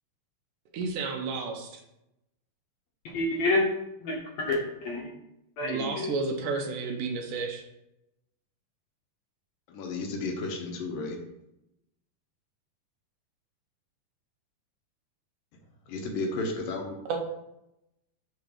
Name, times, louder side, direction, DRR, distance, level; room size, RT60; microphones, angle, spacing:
voice 1, 0.7-1.8 5.6-7.6 17.1-17.2, right 4 dB, 75° right, 2 dB, 2.4 m, -31 dB
voice 2, 3.1-3.7 4.0-5.0 5.6-6.1, left 2 dB, 60° left, -1 dB, 1.9 m, -28 dB
voice 3, 9.7-11.2 15.9-17.0, left 3 dB, 85° left, 2 dB, 2.8 m, -33 dB
7.0 x 3.9 x 6.3 m, 0.86 s
omnidirectional pair, 4.0 m